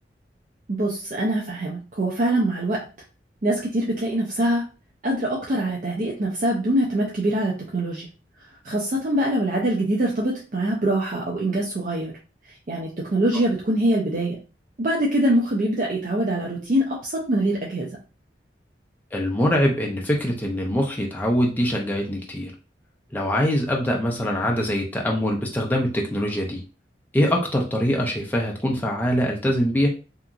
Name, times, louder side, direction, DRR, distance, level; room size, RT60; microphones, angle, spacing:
voice 1, 0.7-2.9 3.4-4.6 5.0-8.1 8.6-12.1 12.5-14.4 14.8-17.9, right 1 dB, 45° right, -2 dB, 0.5 m, -24 dB
voice 2, 19.1-22.5 23.1-26.6 27.1-29.9, equal, 10° left, -1 dB, 0.4 m, -23 dB
2.8 x 2.4 x 2.4 m, 0.33 s
head